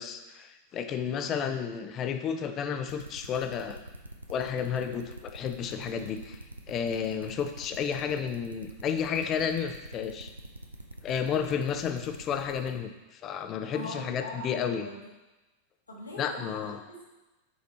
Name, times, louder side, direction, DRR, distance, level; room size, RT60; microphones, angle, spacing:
voice 1, 0.0-3.8 4.3-6.4 6.7-10.3 11.0-14.9 16.2-16.8, left 7 dB, 30° left, 8 dB, 0.5 m, -32 dB
sound 1, 2.9-12.7, right 1 dB, 85° right, 0.5 m, -44 dB
voice 2, 13.7-15.0 15.9-17.0, left 1 dB, 80° left, -3 dB, 1.4 m, -41 dB
5.6 x 4.2 x 4.1 m, 1.1 s
figure-of-eight pair, 90°, 0 cm